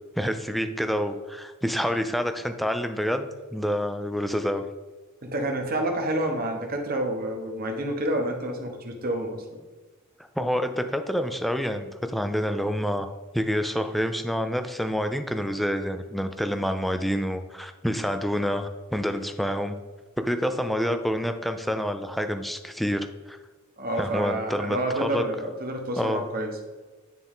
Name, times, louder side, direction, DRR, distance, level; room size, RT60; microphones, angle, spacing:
voice 1, 0.2-4.6 10.4-19.8 20.2-23.4 24.0-25.2 26.0-26.2, equal, ahead, 7 dB, 0.4 m, -28 dB
voice 2, 5.2-9.6 23.8-26.6, right 1 dB, 45° right, 3 dB, 1.0 m, -29 dB
9.3 x 3.7 x 3.6 m, 1.3 s
head